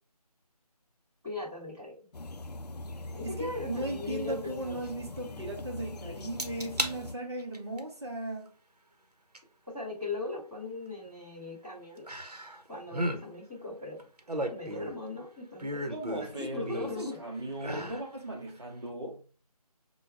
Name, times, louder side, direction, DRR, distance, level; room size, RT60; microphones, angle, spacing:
voice 1, 1.2-2.0 3.1-4.8 9.7-12.1 12.7-14.0 14.5-17.2 17.4-17.5, left 3 dB, 5° right, 0.8 m, -39 dB
sound 1, 2.1-7.2, left 2 dB, 85° left, 0.4 m, -42 dB
voice 2, 3.2-8.5 15.9-19.2, right 1 dB, 45° right, 0.8 m, -37 dB
sound 2, 6.4-7.0 7.4-7.8 9.4-9.5 12.1-12.6 12.9-13.2 14.0-15.1 15.6-17.1 17.6-18.1 18.5-18.6, right 1 dB, 80° right, 0.8 m, -35 dB
4.5 x 2.2 x 3.5 m
figure-of-eight pair, 165°, 20 cm